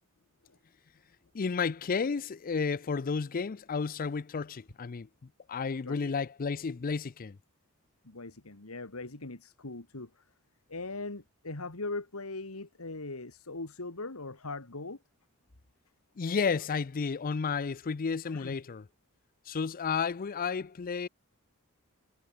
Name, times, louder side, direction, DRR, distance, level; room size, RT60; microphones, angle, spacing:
voice 1, 1.3-5.1 5.5-7.4 16.2-18.8 19.5-21.1, left 5 dB, 40° left, 0.5 m, -32 dB
voice 2, 5.8-6.1 8.0-10.2 10.7-15.0 18.3-18.5, left 3 dB, 90° left, 2.2 m, -40 dB
head